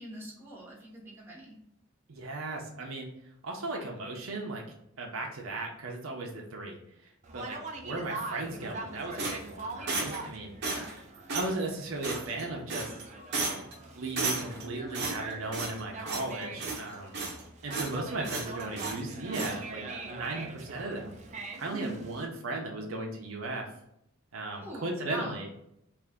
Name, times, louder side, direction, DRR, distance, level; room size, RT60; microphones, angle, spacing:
voice 1, 0.0-1.6 10.7-10.9 21.7-22.0 24.6-25.4, right 1 dB, 10° right, -5 dB, 1.1 m, -42 dB
voice 2, 2.1-3.1 3.4-4.6 5.0-6.8 7.3-7.6 7.8-10.5 11.3-12.9 14.0-17.2 17.6-21.2 21.6-23.7 24.3-25.5, right 2 dB, 75° right, 0 dB, 0.7 m, -36 dB
Conversation, 7.2-22.3, right 3 dB, 35° right, 0.5 m, -43 dB
sound 1, 9.2-10.3 10.6-11.0 11.3-11.5 12.0-12.4 12.7-13.0 13.3-13.7 14.2-14.6 14.9-15.8 16.1-16.3 16.6-17.4 17.7-18.0 18.2-19.0 19.3-19.6, right 3 dB, 60° right, 1.0 m, -34 dB
3.4 x 2.5 x 3.5 m, 0.76 s
head